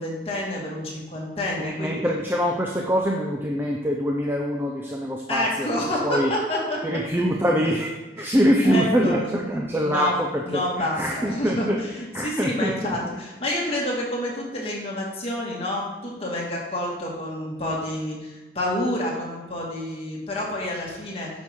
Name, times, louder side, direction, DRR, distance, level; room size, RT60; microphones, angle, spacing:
voice 1, 0.0-2.0 5.3-6.8 8.2-9.3 9.8-10.2 10.5-21.3, left 1 dB, 35° left, -3 dB, 1.9 m, -28 dB
voice 2, 1.6-5.7 6.0-6.3 6.8-7.9 8.2-11.8 12.1-13.2, equal, 15° right, 0 dB, 0.6 m, -24 dB
9.2 x 6.4 x 3.7 m, 1.2 s
head